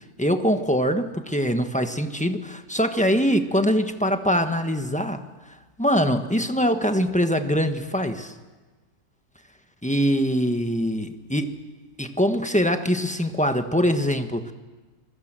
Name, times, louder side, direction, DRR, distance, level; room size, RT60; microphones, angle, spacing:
voice 1, 0.2-5.2 5.8-8.3 9.8-11.5 12.0-14.5, equal, 5° left, 7 dB, 1.2 m, -23 dB
27.5 x 21.5 x 7.6 m, 1.3 s
omnidirectional pair, 1.6 m